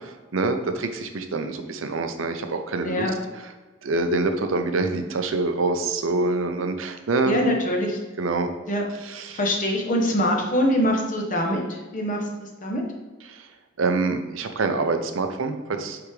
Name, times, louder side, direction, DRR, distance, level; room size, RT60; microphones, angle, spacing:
voice 1, 0.3-3.1 3.8-7.4 8.2-8.5 9.0-9.4 13.3-13.5 13.8-16.0, right 3 dB, 80° right, 7 dB, 0.6 m, -25 dB
voice 2, 7.2-8.0 8.7-8.9 9.3-12.8, equal, 40° left, 1 dB, 0.8 m, -24 dB
8.3 x 3.5 x 3.2 m, 1.3 s
head